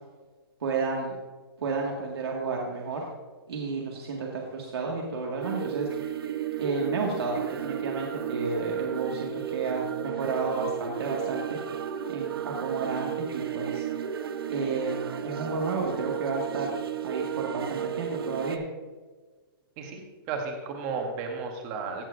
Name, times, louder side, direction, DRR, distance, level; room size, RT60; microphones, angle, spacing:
voice 1, 0.6-1.2 1.6-3.0 3.5-6.1 6.6-11.6 12.1-13.9 14.5-15.0 15.2-16.8 17.0-18.6, right 3 dB, 90° right, -2 dB, 1.9 m, -31 dB
sound 1, 5.4-18.6, right 9 dB, 70° right, 0.8 m, -33 dB
voice 2, 20.3-22.1, right 4 dB, 20° right, 3 dB, 1.0 m, -33 dB
15.5 x 7.1 x 2.6 m, 1.3 s
hypercardioid pair, 180°, 13 cm